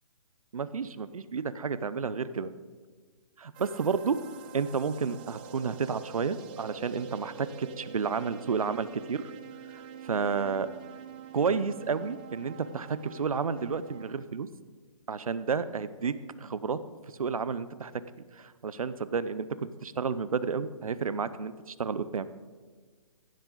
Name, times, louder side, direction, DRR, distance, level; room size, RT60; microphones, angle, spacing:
voice 1, 0.5-2.5 3.4-4.2 4.5-9.3 9.7-10.7 11.3-14.5 15.1-16.8 17.2-17.9 18.4-19.5 19.8-22.3, right 5 dB, 80° right, 15 dB, 0.7 m, -31 dB
sound 1, 3.5-14.1, right 7 dB, 15° right, 0.3 m, -46 dB
15.5 x 7.5 x 3.9 m, 1.5 s
hypercardioid pair, 145°, 18 cm